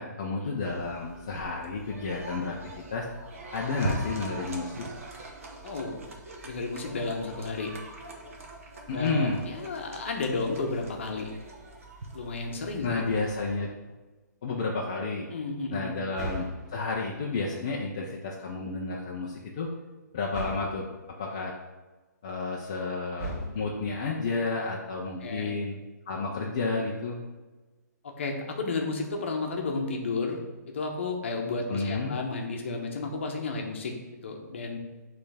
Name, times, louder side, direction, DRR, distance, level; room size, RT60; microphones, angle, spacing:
voice 1, 0.0-2.6 2.9-3.1 3.5-4.9 8.9-9.4 12.8-13.7 14.4-15.3 15.7-19.7 20.1-20.9 21.2-21.5 22.2-25.8 26.1-27.2 31.7-32.2, left 3 dB, 20° left, -3 dB, 0.4 m, -31 dB
sound 1, 0.6-13.5, right 2 dB, 45° right, 1.0 m, -41 dB
voice 2, 5.6-6.0 6.4-7.7 8.9-11.3 12.1-13.0 15.3-15.9 25.2-25.5 28.0-30.4 30.7-33.9 34.2-34.8, left 3 dB, 40° left, 2 dB, 0.8 m, -32 dB
sound 2, 16.1-17.1 20.3-20.9 23.2-24.0, equal, 5° right, 0.9 m, -38 dB
8.5 x 3.3 x 3.3 m, 1.2 s
hypercardioid pair, 180°, 10 cm